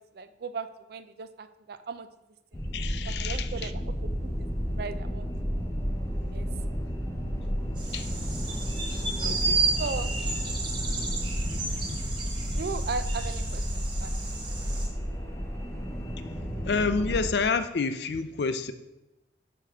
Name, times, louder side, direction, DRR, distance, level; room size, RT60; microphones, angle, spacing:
voice 1, 0.1-2.1 3.0-4.5 4.8-5.3 6.3-6.5 9.8-10.2 12.6-14.1, right 4 dB, 60° right, 11 dB, 0.4 m, -37 dB
sound 1, 2.5-17.3, equal, 15° left, 0.8 m, -32 dB
voice 2, 2.7-3.7 7.9-8.1 9.2-9.7 11.5-11.6 11.9-12.0 16.6-18.7, left 4 dB, 65° left, 10 dB, 0.5 m, -29 dB
sound 2, 7.8-14.9, right 3 dB, 25° right, 1.1 m, -32 dB
8.7 x 3.0 x 5.9 m, 0.98 s
head